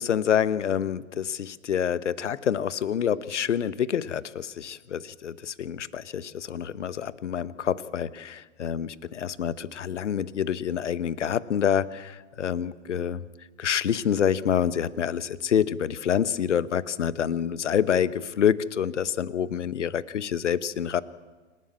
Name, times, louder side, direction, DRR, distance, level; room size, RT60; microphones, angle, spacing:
voice 1, 0.0-13.3 13.6-21.0, left 8 dB, 75° left, 18 dB, 1.0 m, -27 dB
28.0 x 12.0 x 8.9 m, 1.3 s
figure-of-eight pair, 110°, 36 cm